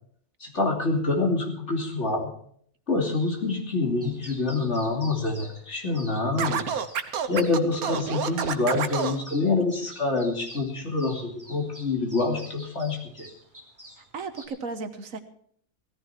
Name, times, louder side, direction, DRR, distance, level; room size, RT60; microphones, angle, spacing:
voice 1, 0.4-2.3 2.9-6.9 7.3-13.3, left 3 dB, 50° left, 1 dB, 3.1 m, -26 dB
sound 1, 3.1-14.5, right 1 dB, 10° right, 3.1 m, -49 dB
Scratching (performance technique), 6.4-9.2, right 7 dB, 85° right, 1.5 m, -28 dB
voice 2, 14.0-15.2, right 4 dB, 70° right, 9 dB, 1.5 m, -35 dB
17.0 x 14.0 x 4.4 m, 0.63 s
omnidirectional pair, 1.5 m